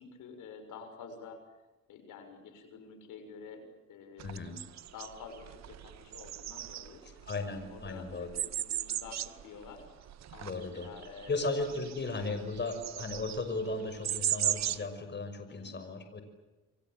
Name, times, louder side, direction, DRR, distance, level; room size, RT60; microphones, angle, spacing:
voice 1, 0.0-1.4 1.9-4.4 4.9-7.0 7.4-9.8 10.3-12.3 12.7-12.8 15.5-15.8, left 5 dB, 85° left, 7 dB, 6.6 m, -49 dB
voice 2, 4.2-4.6 7.2-8.3 10.4-10.9 11.3-16.2, left 3 dB, 35° left, 7 dB, 6.1 m, -36 dB
sound 1, 4.2-14.9, right 11 dB, 60° right, 1.1 m, -37 dB
29.0 x 24.0 x 7.7 m, 1.1 s
cardioid pair, 90°, 30 cm